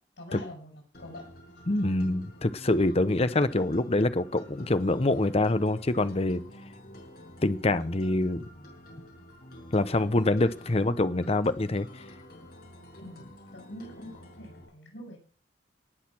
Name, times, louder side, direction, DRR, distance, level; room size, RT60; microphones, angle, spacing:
voice 1, 0.2-1.2 1.9-2.0 10.4-11.0 13.0-15.2, left 1 dB, 90° left, 0 dB, 7.5 m, -45 dB
sound 1, 0.9-14.7, left 1 dB, 60° left, 6.4 m, -49 dB
voice 2, 1.7-6.4 7.4-8.4 9.7-12.0, left 2 dB, 35° left, 12 dB, 0.8 m, -25 dB
19.0 x 6.5 x 6.0 m, 0.39 s
head